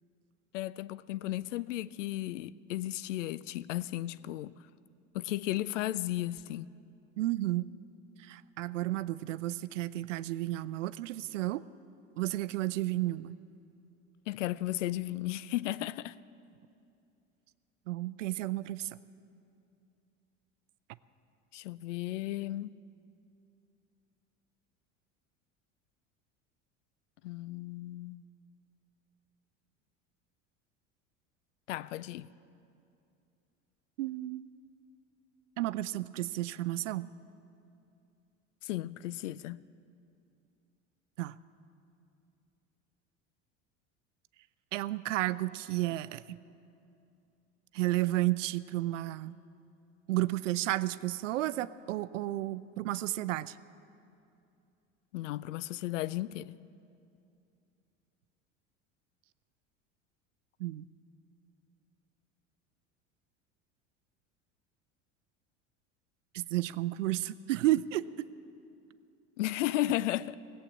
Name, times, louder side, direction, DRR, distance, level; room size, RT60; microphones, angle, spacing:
voice 1, 0.5-4.5 5.1-6.7 14.3-16.2 21.5-22.7 27.2-28.2 31.7-32.3 38.6-39.6 55.1-56.5 69.4-70.4, left 15 dB, 80° left, 0.5 m, -34 dB
voice 2, 7.2-7.7 8.2-11.6 12.2-13.4 17.9-18.9 34.0-34.4 35.6-37.1 41.2-41.3 44.7-46.4 47.7-49.4 50.1-53.5 60.6-60.8 66.3-68.3, right 16 dB, 80° right, 0.5 m, -32 dB
17.5 x 8.2 x 8.6 m
hypercardioid pair, 75°, 36 cm